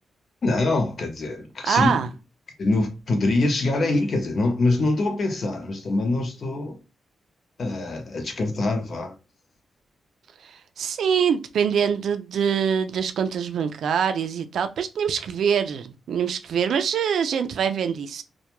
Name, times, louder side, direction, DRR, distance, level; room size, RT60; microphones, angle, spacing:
voice 1, 0.4-1.9 2.6-6.8 7.6-9.1, left 2 dB, 50° left, 0.7 m, -24 dB
voice 2, 1.6-2.1 10.4-18.2, right 7 dB, 75° right, 0.3 m, -24 dB
2.2 x 2.2 x 2.9 m
cardioid pair, 95°, 0 cm